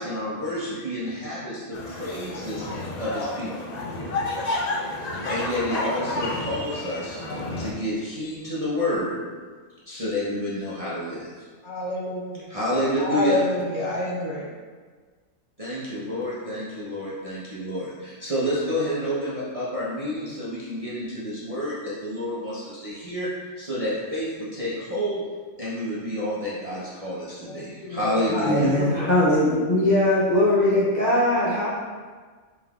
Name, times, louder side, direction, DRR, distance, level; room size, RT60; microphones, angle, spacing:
voice 1, 0.0-2.7 3.0-3.7 5.3-7.2 7.6-9.2 9.9-11.5 12.5-13.4 15.6-23.3 23.6-25.2 25.6-28.7, equal, 35° right, -10 dB, 0.7 m, -29 dB
sound 1, 1.7-7.7, left 2 dB, 80° left, 0.3 m, -30 dB
voice 2, 11.6-12.2 13.0-14.4 27.5-29.1, left 2 dB, 60° left, -4 dB, 1.0 m, -27 dB
voice 3, 28.4-31.7, left 1 dB, 40° left, -9 dB, 0.7 m, -20 dB
5.3 x 3.6 x 2.4 m, 1.5 s
omnidirectional pair, 1.5 m